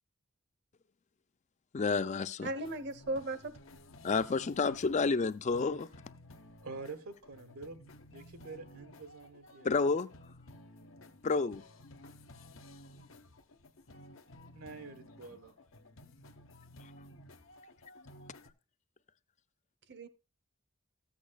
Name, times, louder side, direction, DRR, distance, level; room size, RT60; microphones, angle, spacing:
voice 1, 1.7-2.5 4.0-5.9 9.6-10.1 11.2-11.6, left 4 dB, 35° left, 0.4 m, -30 dB
voice 2, 2.4-3.6 19.9-20.1, right 2 dB, 55° right, 0.8 m, -37 dB
sound 1, 2.6-18.5, left 1 dB, 65° left, 0.9 m, -55 dB
voice 3, 6.6-9.7 14.5-15.5, right 3 dB, 85° right, 1.2 m, -47 dB
14.0 x 8.4 x 2.3 m
head